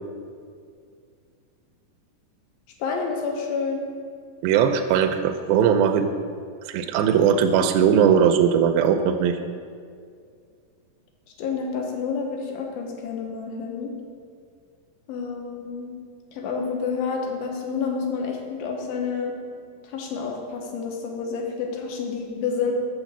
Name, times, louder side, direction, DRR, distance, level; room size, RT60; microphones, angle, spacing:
voice 1, 2.8-3.8 11.4-13.9 15.1-15.9 16.3-19.3 19.9-22.7, left 5 dB, 85° left, 2 dB, 2.8 m, -29 dB
voice 2, 4.4-6.1 6.7-9.4, right 8 dB, 85° right, 6 dB, 2.3 m, -19 dB
6.4 x 6.3 x 7.1 m, 2.2 s
omnidirectional pair, 4.2 m